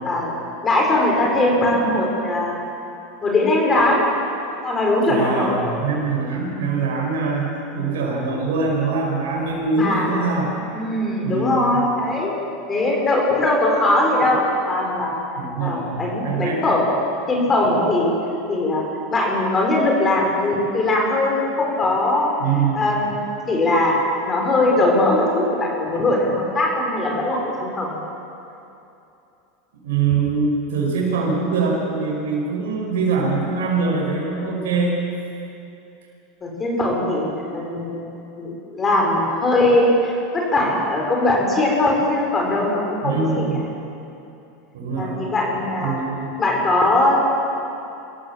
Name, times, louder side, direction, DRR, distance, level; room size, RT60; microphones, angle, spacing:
voice 1, 0.0-0.4 0.6-2.6 3.2-4.0 4.6-5.6 9.7-10.1 10.7-12.3 12.7-15.1 15.6-16.9 17.3-18.1 18.5-18.8 19.1-22.3 22.7-23.1 23.5-28.0 36.4-37.3 37.5-38.0 38.4-43.4 45.0-46.0 46.4-47.2, left 2 dB, 25° left, -1 dB, 4.9 m, -20 dB
voice 2, 5.1-10.5 11.2-11.8 15.3-16.6 22.4-22.9 29.8-35.0 43.0-43.6 44.7-45.2 45.8-46.3, right 4 dB, 85° right, -2 dB, 5.7 m, -23 dB
24.5 x 15.5 x 7.3 m, 2.8 s
supercardioid pair, 120°, 0 cm